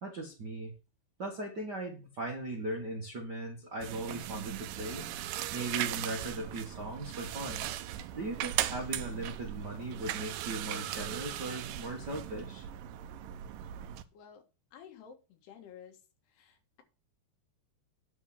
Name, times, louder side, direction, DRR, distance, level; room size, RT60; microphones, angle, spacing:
voice 1, 0.0-0.7 1.2-5.1 5.5-7.7 8.1-12.7, right 2 dB, 55° right, -1 dB, 1.1 m, -38 dB
sound 1, 3.8-14.0, right 12 dB, 85° right, 1.9 m, -38 dB
voice 2, 14.1-14.5 14.7-16.0 16.3-16.8, left 8 dB, 85° left, 5 dB, 3.6 m, -53 dB
9.9 x 4.6 x 7.4 m, 0.32 s
omnidirectional pair, 4.6 m